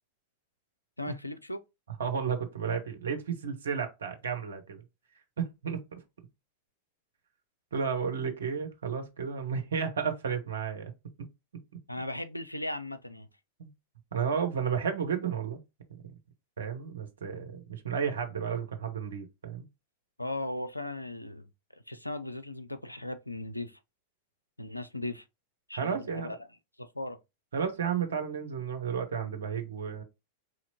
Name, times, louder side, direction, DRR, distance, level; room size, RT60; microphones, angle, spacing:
voice 1, 1.0-1.6 11.9-13.3 20.2-21.5 21.9-23.8 24.6-25.2 25.7-26.4 26.8-27.2, left 1 dB, 85° left, 0.4 m, -37 dB
voice 2, 2.0-4.8 5.4-6.0 7.7-10.9 13.6-13.7 14.1-15.6 16.6-19.6 25.7-26.4 27.5-30.0, right 6 dB, 65° right, 0.9 m, -32 dB
4.9 x 2.9 x 2.8 m
figure-of-eight pair, 90°, 0 cm